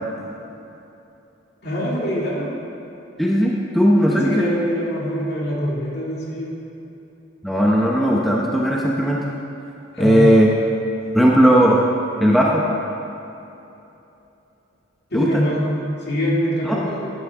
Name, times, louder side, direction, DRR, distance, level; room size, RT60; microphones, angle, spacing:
voice 1, 1.6-2.5 4.0-6.5 9.9-10.3 15.1-17.1, equal, 55° left, -5 dB, 2.4 m, -24 dB
voice 2, 3.2-4.5 7.4-9.3 10.0-10.5 11.1-11.8 12.2-12.7 15.1-15.4 16.6-16.8, equal, ahead, -3 dB, 0.7 m, -17 dB
14.0 x 9.7 x 3.6 m, 2.9 s
head